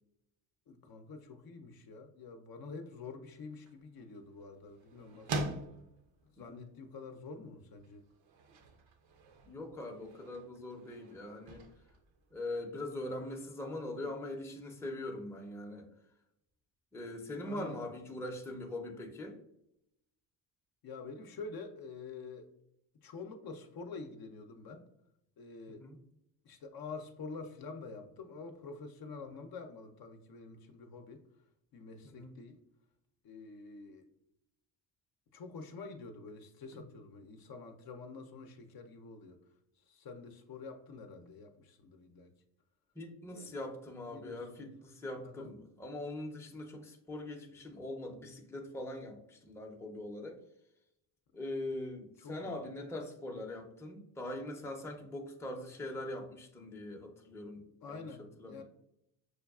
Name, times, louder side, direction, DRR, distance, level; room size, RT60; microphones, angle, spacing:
voice 1, 0.7-5.4 6.3-8.0 17.4-17.8 20.8-22.5 23.0-24.8 25.4-25.8 26.4-31.2 31.7-32.6 33.2-34.0 35.3-39.4 39.9-42.3 43.3-43.6 44.1-44.7 45.2-45.5 52.2-52.6 57.8-58.6, left 4 dB, 50° left, 5 dB, 0.6 m, -47 dB
sound 1, 3.2-13.0, right 2 dB, 65° right, 0.8 m, -46 dB
voice 2, 9.4-11.6 12.3-15.9 16.9-19.4 25.7-26.0 32.0-32.3 36.7-36.8 43.0-50.4 51.3-58.1 58.4-58.6, left 1 dB, 5° left, 1 dB, 0.6 m, -42 dB
6.2 x 2.3 x 2.3 m, 0.80 s
supercardioid pair, 80°, 49 cm